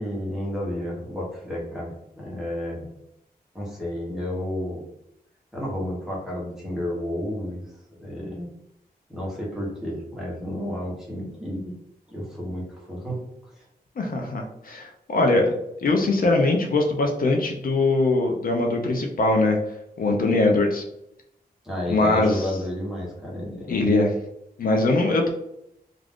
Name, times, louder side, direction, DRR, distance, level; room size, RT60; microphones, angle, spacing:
voice 1, 0.0-2.9 3.5-4.8 5.5-7.6 8.0-8.5 9.1-11.7 12.1-13.2 21.6-23.7, left 1 dB, 5° right, -5 dB, 0.9 m, -31 dB
voice 2, 14.0-15.5 15.8-19.6 20.0-20.8 21.9-22.5 23.7-24.1 24.6-25.3, left 2 dB, 60° left, 2 dB, 0.5 m, -21 dB
2.4 x 2.3 x 3.4 m, 0.80 s
wide cardioid pair, 180°, 16 cm